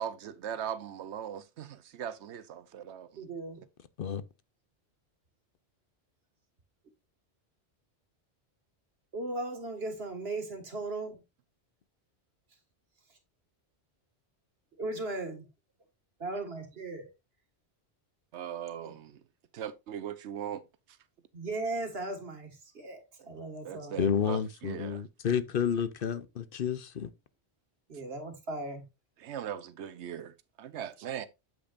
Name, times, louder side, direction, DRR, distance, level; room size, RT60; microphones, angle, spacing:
voice 1, 0.0-3.2 3.6-3.7 18.3-19.2 19.5-21.0 23.6-25.0 29.2-31.3, right 9 dB, 90° right, 1.0 m, -39 dB
voice 2, 3.2-3.6 9.1-11.2 14.8-15.5 16.2-17.1 18.8-18.9 21.3-24.0 27.9-28.8, right 2 dB, 65° right, 2.1 m, -37 dB
voice 3, 24.0-27.1, left 7 dB, 60° left, 0.8 m, -30 dB
8.5 x 8.0 x 2.5 m
omnidirectional pair, 1.1 m